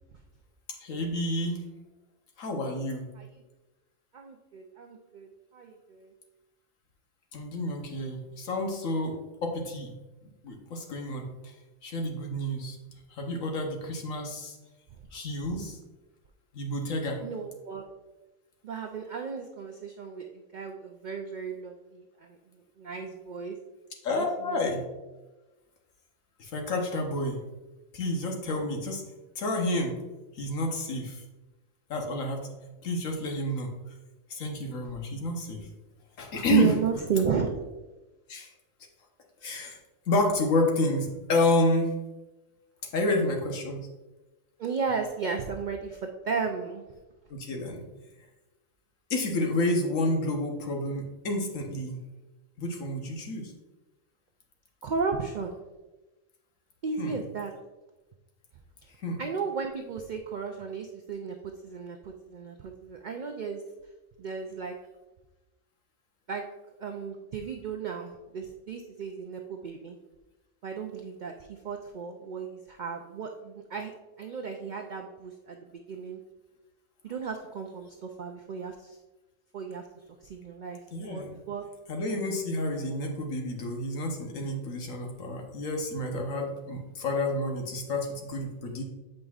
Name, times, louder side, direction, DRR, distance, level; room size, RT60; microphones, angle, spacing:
voice 1, 0.8-1.6 2.4-3.1 7.3-9.2 9.4-9.9 10.4-11.3 11.8-12.8 13.1-14.6 15.1-15.8 16.5-17.2 24.0-24.8 26.4-27.4 27.9-29.0 29.4-30.0 30.4-31.2 31.9-32.5 32.8-33.7 34.3-35.6 36.2-36.8 38.3-38.5 39.4-39.8 40.1-41.9 42.9-43.9 47.3-47.8 49.1-52.0 52.6-53.5 56.9-57.2 59.0-59.2 80.9-81.4 81.9-88.8, left 2 dB, 85° left, 2 dB, 1.4 m, -29 dB
voice 2, 4.1-6.1 17.2-17.8 18.6-23.6 24.1-24.6 36.5-37.5 44.6-46.8 54.8-55.6 56.8-57.5 59.2-63.6 64.2-64.8 66.3-66.4 66.8-70.0 70.6-73.9 74.2-76.2 77.0-79.0 79.5-79.9 80.2-81.6, right 6 dB, 75° right, 3 dB, 0.4 m, -34 dB
7.6 x 5.2 x 2.4 m, 1.1 s
omnidirectional pair, 1.3 m